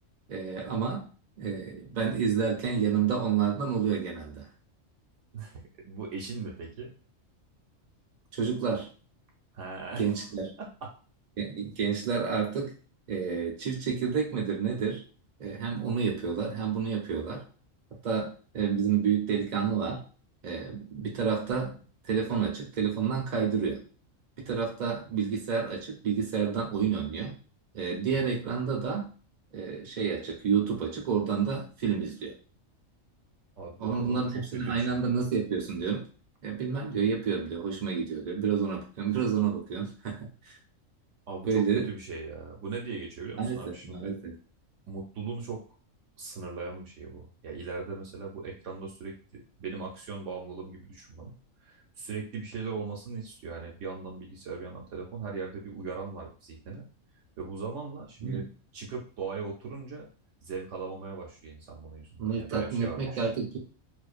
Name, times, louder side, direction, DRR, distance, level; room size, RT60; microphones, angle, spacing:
voice 1, 0.3-1.1 1.4-4.5 8.3-8.9 10.0-10.6 11.4-12.7 13.1-15.0 15.4-17.4 18.0-20.0 20.4-21.8 22.1-23.8 24.4-27.4 27.7-29.1 29.5-32.4 33.8-36.0 36.4-40.6 41.5-41.9 43.4-44.3 58.2-58.4 62.2-63.6, right 6 dB, 45° right, -1 dB, 0.7 m, -29 dB
voice 2, 5.3-6.9 9.5-10.1 10.6-10.7 33.6-35.0 41.3-44.1 44.9-45.6 46.2-51.3 51.6-56.9 57.4-58.5 58.7-60.1 60.4-63.3, right 4 dB, 70° right, -1 dB, 1.0 m, -39 dB
2.5 x 2.2 x 2.4 m, 0.38 s
omnidirectional pair, 1.4 m